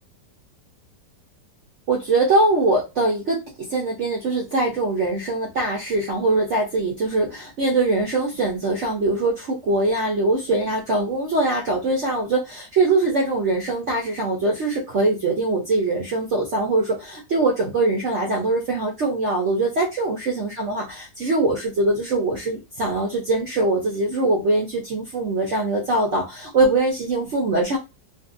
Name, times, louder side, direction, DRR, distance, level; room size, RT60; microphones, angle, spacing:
voice 1, 1.9-3.4 3.7-27.8, right 2 dB, 65° right, -2 dB, 0.7 m, -22 dB
2.6 x 2.5 x 2.5 m, 0.25 s
omnidirectional pair, 1.9 m